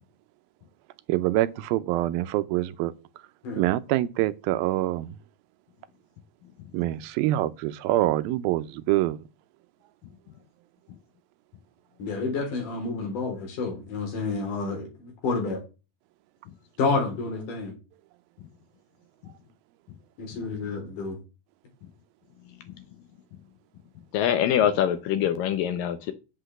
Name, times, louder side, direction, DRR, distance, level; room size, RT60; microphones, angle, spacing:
voice 1, 1.1-2.9 3.6-5.2 6.7-9.2, right 15 dB, 80° right, 2.4 m, -25 dB
voice 2, 12.0-15.6 16.8-17.7 20.2-21.2, left 4 dB, 55° left, 4.8 m, -29 dB
voice 3, 24.1-26.1, left 10 dB, 75° left, 2.3 m, -24 dB
8.3 x 6.1 x 7.8 m
omnidirectional pair, 4.5 m